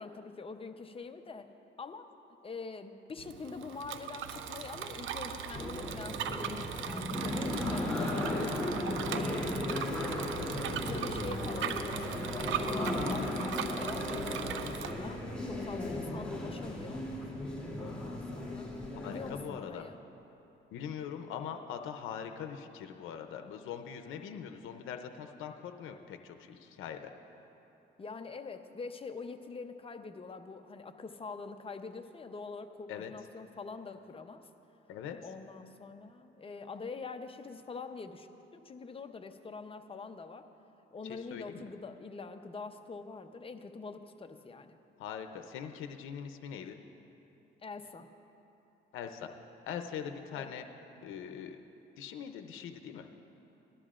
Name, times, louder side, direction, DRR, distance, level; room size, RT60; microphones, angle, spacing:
voice 1, 0.0-1.5 1.8-2.1 2.4-9.0 9.3-9.6 10.1-17.0 17.8-18.7 19.0-20.0 28.0-34.5 35.2-40.5 40.9-44.8 47.6-48.1 50.4-50.5, left 4 dB, 30° left, 7 dB, 0.7 m, -45 dB
Bicycle, 3.2-14.9, right 8 dB, 80° right, 0.7 m, -39 dB
sound 1, 5.5-19.4, left 1 dB, 5° left, 2.9 m, -36 dB
voice 2, 19.0-19.8 20.7-27.1 32.9-33.1 34.9-35.2 41.0-41.7 45.0-46.8 48.9-49.3 49.7-50.6 51.0-51.6 52.0-53.1, left 8 dB, 90° left, 6 dB, 0.6 m, -42 dB
18.5 x 12.0 x 2.5 m, 2.9 s
cardioid pair, 90°, 20 cm